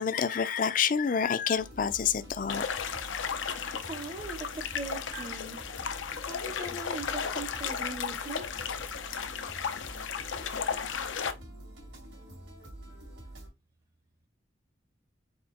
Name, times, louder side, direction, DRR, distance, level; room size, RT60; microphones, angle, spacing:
voice 1, 0.0-2.7, left 7 dB, 45° left, 0.4 m, -28 dB
sound 1, 1.6-13.5, right 1 dB, 90° right, 2.2 m, -47 dB
sound 2, 2.5-11.3, left 6 dB, 85° left, 0.6 m, -35 dB
voice 2, 3.8-5.6 6.2-8.5, right 3 dB, 25° right, 0.6 m, -40 dB
Bell, 5.1-6.7, right 7 dB, 60° right, 0.9 m, -51 dB
4.4 x 2.8 x 4.4 m
head